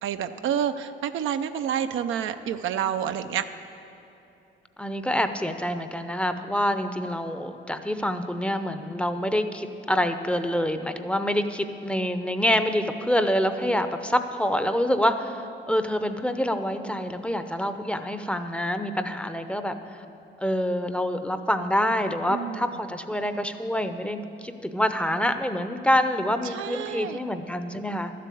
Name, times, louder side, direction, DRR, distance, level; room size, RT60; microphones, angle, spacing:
voice 1, 0.0-3.4 22.3-22.7 26.5-27.2, right 9 dB, 80° right, 9 dB, 0.6 m, -28 dB
voice 2, 4.8-19.7 20.4-28.1, equal, 5° left, 8 dB, 0.6 m, -26 dB
12.5 x 7.5 x 8.4 m, 2.8 s
cardioid pair, 90°, 20 cm